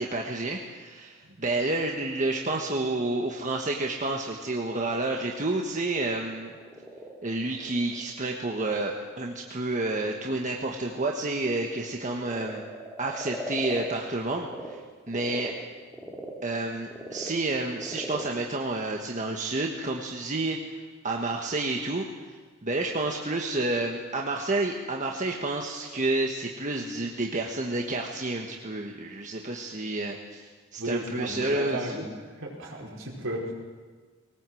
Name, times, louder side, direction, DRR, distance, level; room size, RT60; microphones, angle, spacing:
voice 1, 0.0-6.5 7.2-12.6 13.0-14.8 15.1-15.5 16.4-20.6 21.0-22.1 22.6-30.4 30.7-32.0, right 2 dB, 35° right, 1 dB, 1.4 m, -30 dB
Frog, 2.1-14.7 15.0-19.7, equal, 5° right, 3.2 m, -43 dB
voice 2, 30.8-33.5, right 1 dB, 65° right, -1 dB, 5.0 m, -34 dB
21.0 x 18.5 x 7.8 m, 1.5 s
head